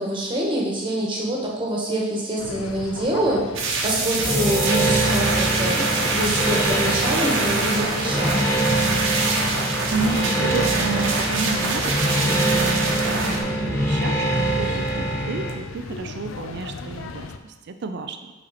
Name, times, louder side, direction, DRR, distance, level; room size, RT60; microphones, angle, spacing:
voice 1, 0.0-3.5 3.8-8.4, right 1 dB, 25° right, -2 dB, 1.4 m, -25 dB
sound 1, 2.4-17.4, left 4 dB, 85° left, 0.5 m, -37 dB
sound 2, 3.6-13.4, right 3 dB, 75° right, 1.0 m, -25 dB
sound 3, 4.2-15.5, right 1 dB, 15° left, 0.9 m, -24 dB
voice 2, 9.9-18.3, right 4 dB, 60° right, 8 dB, 0.4 m, -31 dB
7.6 x 4.4 x 4.2 m, 1.2 s
head